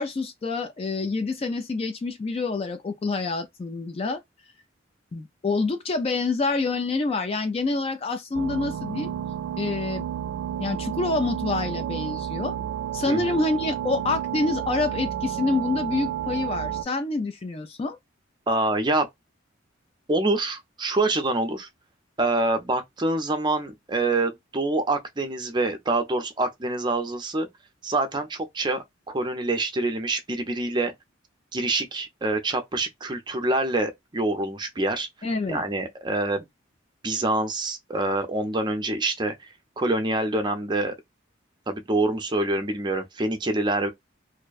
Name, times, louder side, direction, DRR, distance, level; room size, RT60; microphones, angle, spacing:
voice 1, 0.0-4.2 5.1-9.1 9.6-10.0 10.6-12.6 12.9-18.0 35.2-35.6, left 3 dB, 30° left, 0.3 m, -27 dB
sound 1, 8.3-16.8, right 10 dB, 85° right, 0.3 m, -31 dB
voice 2, 13.1-13.4 18.5-19.1 20.1-21.7 22.2-27.5 27.8-30.9 31.5-35.1 35.5-36.5 37.0-39.3 39.8-40.9 41.7-43.9, right 2 dB, 25° right, 0.5 m, -26 dB
2.6 x 2.1 x 2.3 m
head